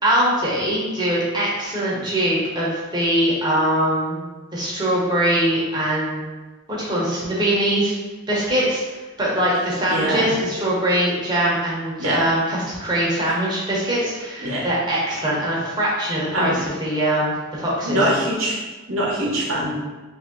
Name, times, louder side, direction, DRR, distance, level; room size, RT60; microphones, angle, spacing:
voice 1, 0.0-4.2 4.5-6.2 6.7-8.0 8.3-18.0, right 1 dB, 20° right, -6 dB, 1.0 m, -22 dB
voice 2, 9.9-10.4 12.0-12.2 14.4-14.7 16.3-16.6 17.8-18.6 18.9-19.8, right 1 dB, 70° right, -3 dB, 0.8 m, -22 dB
3.3 x 2.7 x 3.7 m, 1.2 s
head